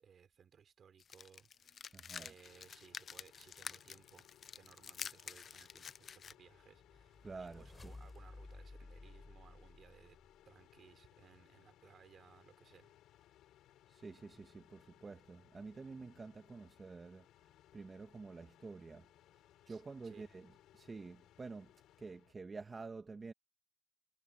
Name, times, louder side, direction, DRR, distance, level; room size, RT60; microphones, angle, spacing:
voice 1, 0.0-4.3 4.5-10.2 10.5-12.9 19.7-20.3, right 7 dB, 55° right, 3.5 m, -62 dB
sound 1, 1.0-6.3, left 7 dB, 50° left, 0.5 m, -49 dB
voice 2, 1.9-2.3 7.2-7.9 13.9-17.3 17.7-19.1 19.7-20.5 20.7-21.7 22.0-23.3, right 4 dB, 30° right, 1.3 m, -49 dB
sound 2, 2.4-22.3, left 13 dB, 85° left, 6.9 m, -66 dB
sound 3, 6.5-10.5, left 2 dB, 20° left, 5.0 m, -55 dB
cardioid pair, 90°, 0 cm